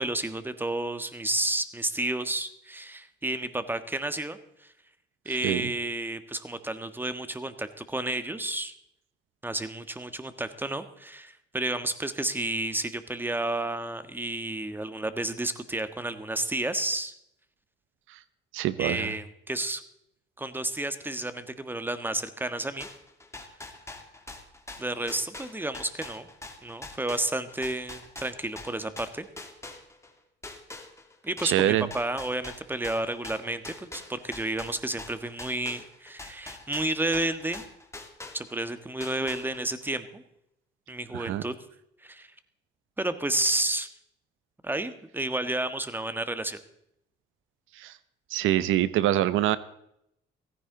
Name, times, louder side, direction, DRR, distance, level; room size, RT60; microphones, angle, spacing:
voice 1, 0.0-4.7 5.2-8.7 9.4-17.1 18.8-19.8 20.4-22.9 24.8-26.3 26.6-29.3 31.2-37.6 38.3-40.2 40.9-41.5 42.0-42.3 43.0-43.9 44.6-46.6, right 1 dB, 10° right, 11 dB, 1.5 m, -31 dB
voice 2, 18.5-19.1 31.4-31.9 41.1-41.4 47.8-47.9 48.3-49.6, right 13 dB, 85° right, 16 dB, 0.7 m, -25 dB
sound 1, 22.8-30.1 30.4-38.7 39.0-39.8, left 2 dB, 15° left, 2.5 m, -43 dB
17.0 x 15.5 x 3.9 m, 0.76 s
cardioid pair, 90°, 20 cm